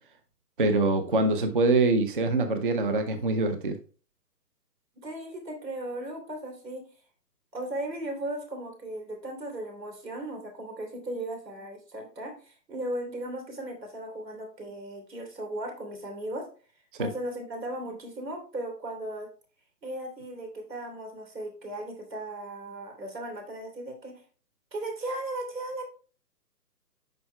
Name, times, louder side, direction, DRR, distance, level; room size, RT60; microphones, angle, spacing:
voice 1, 0.6-3.8 17.0-17.1, right 2 dB, 35° right, 8 dB, 0.5 m, -24 dB
voice 2, 4.9-6.8 7.5-16.5 17.0-19.3 19.8-24.2 24.7-25.8, right 1 dB, 80° right, 2 dB, 3.1 m, -37 dB
8.9 x 5.6 x 2.2 m, 0.39 s
figure-of-eight pair, 140°, 49 cm